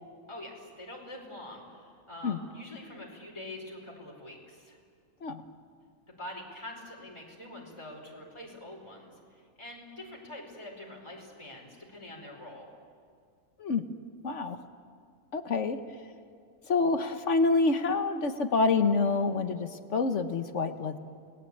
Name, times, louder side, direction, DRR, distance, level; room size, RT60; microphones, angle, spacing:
voice 1, 0.3-4.8 6.1-12.7, left 1 dB, 20° left, -1 dB, 4.8 m, -45 dB
voice 2, 14.2-14.6 15.3-15.8 16.7-21.0, left 3 dB, 60° left, 8 dB, 1.4 m, -27 dB
29.0 x 20.0 x 8.7 m, 2.2 s
omnidirectional pair, 1.5 m